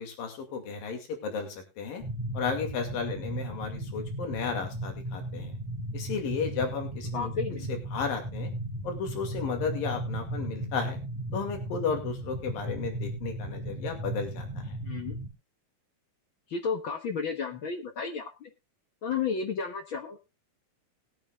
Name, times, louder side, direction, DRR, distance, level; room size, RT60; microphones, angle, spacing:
voice 1, 0.0-1.5 1.8-2.0 2.3-5.5 5.9-7.3 7.7-8.5 8.8-11.0 11.3-14.5, left 6 dB, 85° left, 4 dB, 4.0 m, -33 dB
sound 1, 2.0-15.3, right 1 dB, 5° right, 1.5 m, -36 dB
voice 2, 7.1-7.7 14.8-15.2 16.5-18.5 19.0-20.2, left 5 dB, 65° left, 5 dB, 1.2 m, -32 dB
20.5 x 8.9 x 2.4 m, 0.26 s
omnidirectional pair, 4.0 m